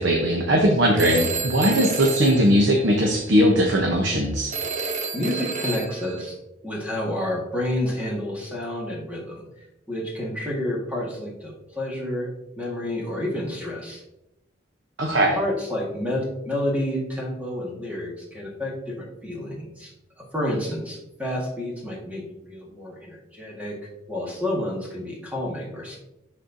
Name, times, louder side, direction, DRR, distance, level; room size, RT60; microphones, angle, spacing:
voice 1, 0.0-4.5 15.0-15.4, equal, 70° right, 1 dB, 0.9 m, -19 dB
Telephone, 1.0-3.3 4.5-6.2, right 4 dB, 40° right, 0.7 m, -30 dB
voice 2, 5.1-6.4 6.6-9.4 9.9-12.3 12.6-14.0 15.3-19.9 20.2-22.2 22.5-23.8 24.1-26.0, left 1 dB, 10° right, -3 dB, 1.7 m, -29 dB
11.0 x 4.3 x 2.7 m, 0.90 s
head